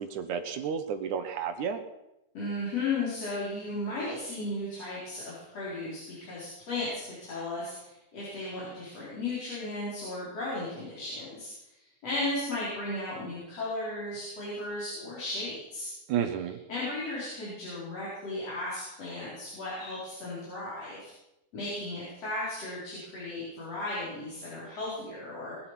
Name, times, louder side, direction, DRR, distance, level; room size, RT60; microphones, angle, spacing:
voice 1, 0.0-1.8 16.1-16.6, right 7 dB, 70° right, 9 dB, 2.2 m, -31 dB
voice 2, 2.3-11.5 12.0-15.9 16.7-21.1 21.5-25.6, left 2 dB, 45° left, -9 dB, 5.7 m, -35 dB
21.0 x 8.5 x 6.0 m, 0.89 s
omnidirectional pair, 4.1 m